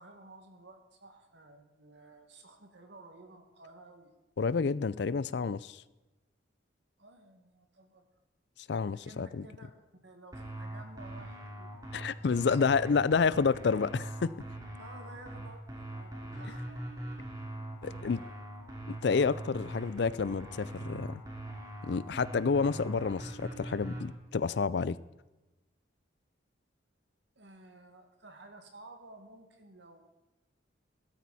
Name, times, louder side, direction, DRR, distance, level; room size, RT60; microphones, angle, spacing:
voice 1, 0.0-4.1 7.0-8.0 9.0-9.7 10.0-11.7 12.2-12.6 12.8-13.1 14.8-16.9 17.4-17.5 17.9-18.3 27.4-30.0, right 2 dB, 60° right, 5 dB, 1.9 m, -53 dB
voice 2, 4.4-5.8 8.7-9.4 11.9-14.3 17.8-18.2 18.9-21.2 21.8-25.0, left 5 dB, 60° left, 18 dB, 0.4 m, -29 dB
sound 1, 10.3-24.0, right 1 dB, 20° right, 2.7 m, -42 dB
15.5 x 12.5 x 4.2 m, 1.1 s
head